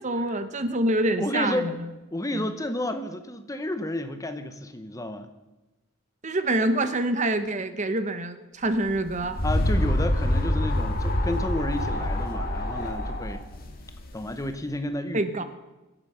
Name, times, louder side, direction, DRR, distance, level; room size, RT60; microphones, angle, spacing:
voice 1, 0.0-1.7 2.3-2.5 6.2-9.4 15.1-15.4, right 1 dB, 35° right, 10 dB, 0.9 m, -26 dB
voice 2, 1.2-1.7 2.1-5.3 9.4-13.4 14.1-15.4, left 1 dB, 15° left, 9 dB, 0.8 m, -31 dB
sound 1, 8.9-14.5, left 1 dB, 45° left, 1.8 m, -26 dB
24.0 x 8.2 x 5.7 m, 1.1 s
head